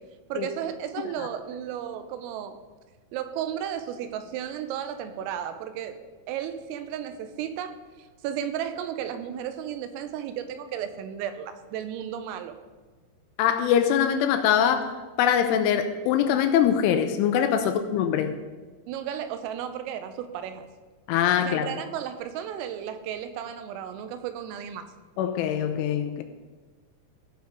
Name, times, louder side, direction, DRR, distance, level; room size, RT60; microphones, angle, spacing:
voice 1, 0.3-2.6 3.1-6.0 6.3-12.5 17.6-17.7 18.9-20.7 21.4-24.8, right 9 dB, 90° right, 3.4 m, -34 dB
voice 2, 13.4-18.4 21.1-21.7 25.2-26.2, left 9 dB, 85° left, 2.9 m, -23 dB
16.0 x 5.8 x 5.1 m
omnidirectional pair, 5.8 m